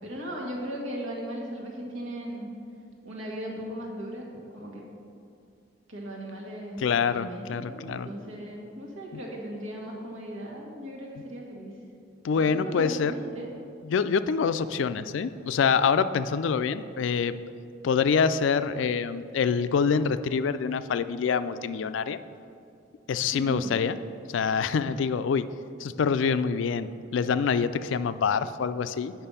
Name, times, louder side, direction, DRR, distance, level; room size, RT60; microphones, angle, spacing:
voice 1, 0.0-2.5 3.0-4.9 5.9-6.8 7.1-11.7 12.3-13.5 23.3-23.7, equal, 90° right, -2 dB, 1.7 m, -37 dB
voice 2, 6.8-8.1 9.1-9.2 12.2-13.1 13.8-17.4 17.8-22.2 23.1-24.0 24.3-25.5 25.8-29.1, left 6 dB, 70° left, 13 dB, 0.3 m, -26 dB
8.8 x 5.7 x 5.6 m, 2.5 s
head